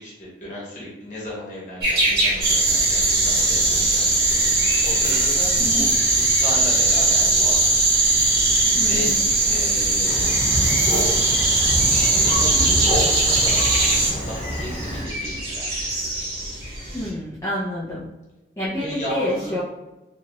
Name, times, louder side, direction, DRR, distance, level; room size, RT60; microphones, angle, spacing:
voice 1, 0.0-7.5 8.8-9.1 9.4-10.4 11.8-15.6 18.8-19.5, left 1 dB, 45° left, -6 dB, 1.2 m, -34 dB
sound 1, 1.8-17.1, right 1 dB, 70° right, 1.5 m, -29 dB
sound 2, 2.4-14.1, right 2 dB, 50° right, 1.0 m, -19 dB
voice 2, 5.6-5.9 8.8-9.2 16.9-18.0 18.6-19.6, left 1 dB, 15° left, -11 dB, 0.5 m, -28 dB
Thunder, 10.0-15.0, equal, 15° right, 1.1 m, -27 dB
2.9 x 2.4 x 3.0 m, 1.0 s
head